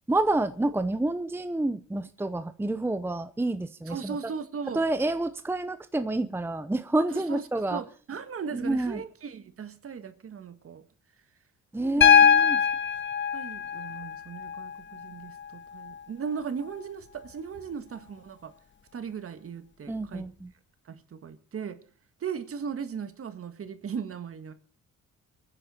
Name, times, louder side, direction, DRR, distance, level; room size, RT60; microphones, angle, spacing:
voice 1, 0.1-4.2 4.7-7.8 8.5-9.0 11.7-12.6 19.9-20.5, right 2 dB, 10° right, 0.8 m, -28 dB
voice 2, 3.9-4.8 7.1-10.8 11.8-12.3 13.3-18.5 18.9-20.3 20.9-21.8 22.2-24.5, right 6 dB, 50° right, 1.7 m, -37 dB
Piano, 12.0-16.0 17.6-17.7, left 7 dB, 40° left, 0.9 m, -23 dB
23.5 x 10.0 x 4.4 m
cardioid pair, 90°, 30 cm